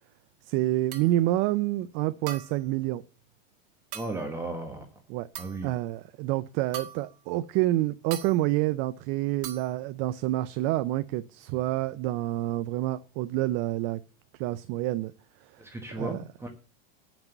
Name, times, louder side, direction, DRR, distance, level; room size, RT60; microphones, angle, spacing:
voice 1, 0.4-3.0 5.1-5.3 5.6-14.0 14.4-15.1 15.5-15.6 16.0-16.2, right 16 dB, 40° right, 0.5 m, -28 dB
sound 1, 0.9-1.2 2.3-2.7 3.9-4.2 5.4-5.7 6.7-7.2 8.1-8.4 9.4-9.7, right 10 dB, 65° right, 1.7 m, -40 dB
voice 2, 3.9-4.9 5.4-5.7 15.6-16.5, right 2 dB, 10° right, 1.3 m, -35 dB
8.7 x 6.1 x 7.9 m
supercardioid pair, 140°, 29 cm